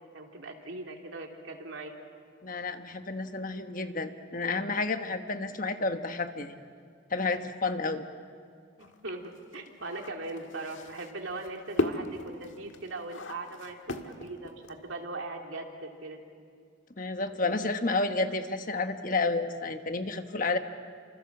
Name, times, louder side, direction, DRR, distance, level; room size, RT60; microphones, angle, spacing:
voice 1, 0.0-1.9 9.0-16.2, right 2 dB, 75° right, 2 dB, 3.0 m, -40 dB
voice 2, 2.4-6.5 7.1-8.0 17.0-20.6, left 3 dB, 45° left, 7 dB, 1.3 m, -30 dB
sound 1, 8.8-15.0, left 2 dB, 75° left, 1.7 m, -36 dB
29.0 x 26.5 x 7.3 m, 2.2 s
head